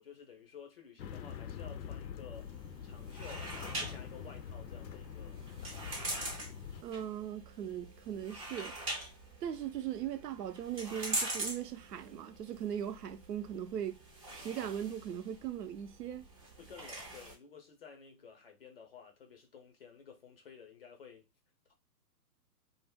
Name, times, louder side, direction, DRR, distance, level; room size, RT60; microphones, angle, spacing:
voice 1, 0.0-6.0 16.6-21.3 21.7-21.8, left 6 dB, 35° left, 0.5 m, -53 dB
sound 1, 1.0-6.8, left 8 dB, 85° left, 0.5 m, -45 dB
sound 2, 2.3-17.3, right 1 dB, 25° right, 0.4 m, -43 dB
voice 2, 6.8-8.8 9.4-14.0 14.3-16.2, right 9 dB, 70° right, 0.6 m, -39 dB
2.3 x 2.0 x 3.4 m
hypercardioid pair, 140°, 50 cm